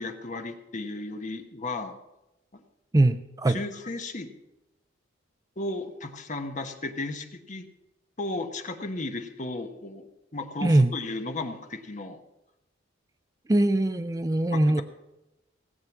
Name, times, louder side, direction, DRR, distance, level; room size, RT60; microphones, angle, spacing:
voice 1, 0.0-2.0 3.5-4.3 5.6-7.7 8.2-12.2 14.5-14.8, left 2 dB, 40° left, 6 dB, 1.1 m, -35 dB
voice 2, 2.9-3.6 10.6-10.9 13.5-14.8, right 1 dB, 20° right, 9 dB, 0.4 m, -22 dB
17.5 x 7.7 x 6.0 m, 0.95 s
head